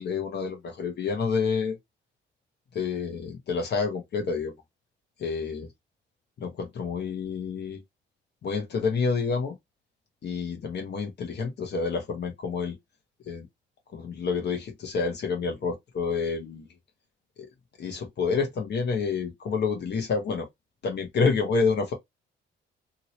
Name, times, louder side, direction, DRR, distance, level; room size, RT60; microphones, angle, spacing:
voice 1, 0.0-1.8 2.7-4.5 5.2-5.7 6.4-7.8 8.4-9.5 10.2-12.8 13.3-13.5 13.9-16.7 17.8-20.5 20.8-21.9, left 5 dB, 60° left, 1.1 m, -28 dB
2.9 x 2.8 x 3.0 m
cardioid pair, 90°, 20 cm